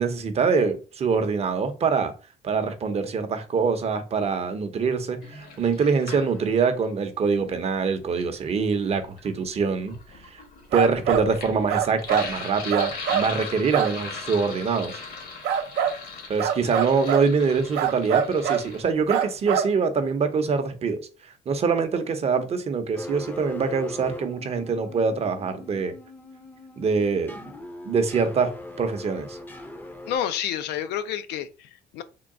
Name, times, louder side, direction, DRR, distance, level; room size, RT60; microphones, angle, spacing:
voice 1, 0.0-2.1 2.4-9.9 10.3-10.4 10.7-15.0 16.3-21.0 21.5-25.9 26.8-27.5 27.8-28.5 28.8-29.4, right 5 dB, 35° right, 0.6 m, -24 dB
Sink (filling or washing), 5.2-6.7 7.9-18.8, left 4 dB, 60° left, 1.1 m, -39 dB
sound 1, 10.7-11.3 11.7-12.3 12.7-13.3 13.7-13.9 15.4-16.0 16.4-17.3 17.7-18.7 19.1-19.7, right 9 dB, 80° right, 0.6 m, -24 dB
sound 2, 22.9-30.2, left 1 dB, 10° left, 0.5 m, -40 dB
voice 2, 30.1-32.0, left 10 dB, 80° left, 0.5 m, -29 dB
3.7 x 2.3 x 3.6 m
cardioid pair, 110°, 17 cm